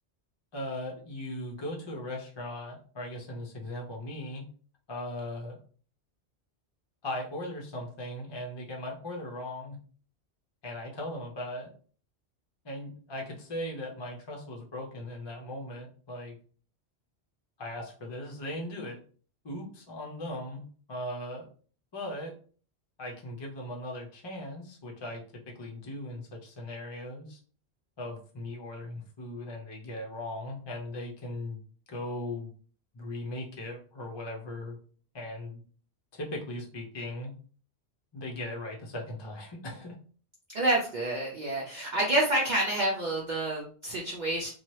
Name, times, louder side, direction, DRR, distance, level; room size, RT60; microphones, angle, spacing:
voice 1, 0.5-4.4 4.9-5.6 7.0-9.8 10.6-11.7 12.6-16.4 17.6-19.0 19.4-20.6 20.9-21.5 21.9-22.3 23.0-27.4 28.0-31.6 31.9-32.5 32.9-34.8 35.1-35.6 36.1-37.3 38.1-39.9, left 1 dB, 35° left, 0 dB, 0.5 m, -38 dB
voice 2, 40.5-44.5, right 1 dB, 50° right, -2 dB, 0.6 m, -28 dB
2.8 x 2.3 x 3.1 m, 0.42 s
omnidirectional pair, 1.1 m